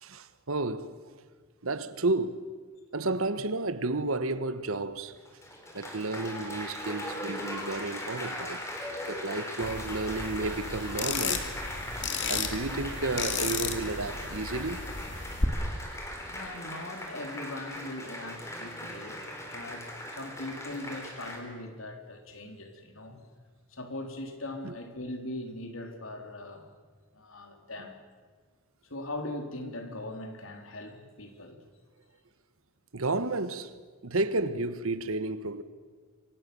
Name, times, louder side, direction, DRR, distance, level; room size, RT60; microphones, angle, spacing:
voice 1, 0.0-1.0 1.6-2.4 2.9-5.2 5.7-8.6 9.1-11.5 12.3-14.9 24.6-24.7 32.9-33.8 34.0-35.6, right 2 dB, 80° right, 1.4 m, -31 dB
Applause, 5.2-21.4, left 1 dB, 15° left, 4.1 m, -39 dB
sound 1, 9.6-15.4, left 5 dB, 55° left, 2.7 m, -34 dB
voice 2, 16.3-23.3 23.7-26.7 27.1-28.0 28.8-31.6, left 1 dB, 75° left, 3.7 m, -40 dB
28.0 x 24.5 x 7.0 m
head